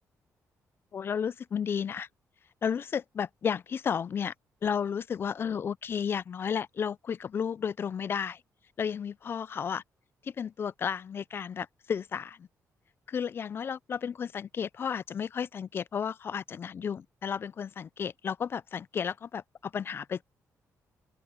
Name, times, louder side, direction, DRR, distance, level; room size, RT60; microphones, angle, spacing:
voice 1, 0.9-2.1 2.6-4.3 4.6-8.4 8.8-9.8 10.2-12.5 13.1-20.2, left 7 dB, 40° left, 0.3 m, -33 dB
open air
wide cardioid pair, 160°, 6 cm